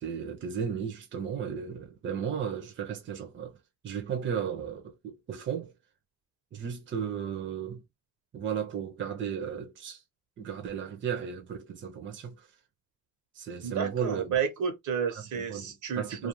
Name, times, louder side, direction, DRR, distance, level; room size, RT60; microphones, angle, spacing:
voice 1, 0.0-3.6 3.8-5.7 6.5-7.8 8.3-10.0 10.4-12.5 13.3-14.3 15.3-16.3, right 7 dB, 40° right, 0.7 m, -35 dB
voice 2, 13.6-16.3, right 6 dB, 75° right, 1.0 m, -31 dB
2.4 x 2.3 x 3.0 m
cardioid pair, 90°, 30 cm